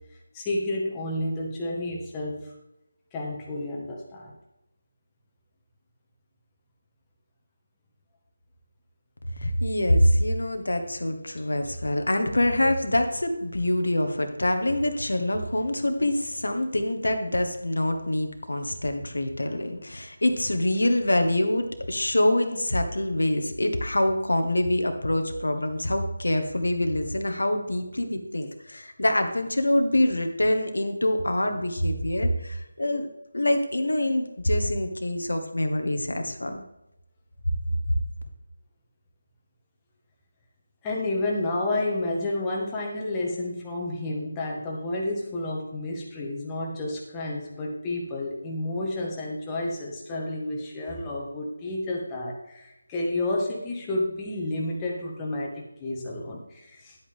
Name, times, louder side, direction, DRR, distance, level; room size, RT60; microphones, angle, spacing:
voice 1, 0.3-2.5 3.1-4.3 40.8-57.0, left 2 dB, 15° left, -3 dB, 1.6 m, -30 dB
voice 2, 9.4-33.1 33.3-36.6, left 1 dB, 80° left, 6 dB, 1.3 m, -25 dB
11.0 x 8.2 x 3.6 m, 0.88 s
figure-of-eight pair, 165°, 0 cm